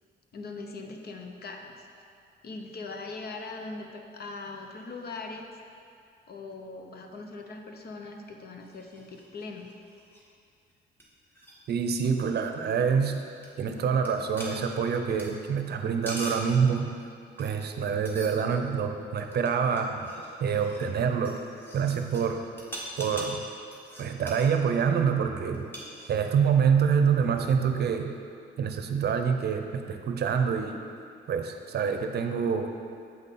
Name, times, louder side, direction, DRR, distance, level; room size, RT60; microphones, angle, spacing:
voice 1, 0.3-1.9 2.4-5.5 6.3-9.7 14.9-15.1, left 3 dB, 55° left, 3 dB, 0.8 m, -40 dB
sound 1, 8.6-10.2 10.7-10.8 11.0-11.1 11.3-11.5 13.4-13.5 14.0-14.1 14.4-15.3 15.8-16.5 17.4-17.8 18.1-18.7 19.2-22.3 22.6-24.5 25.5-26.3, right 1 dB, 10° left, 1.5 m, -43 dB
voice 2, 11.7-13.2 13.6-16.9 17.4-20.1 20.4-21.4 21.7-22.4 23.0-23.4 24.0-25.7 26.1-28.1 28.6-30.8 31.3-32.7, right 6 dB, 55° right, 5 dB, 0.6 m, -26 dB
7.9 x 5.3 x 4.1 m, 2.4 s
cardioid pair, 90°, 20 cm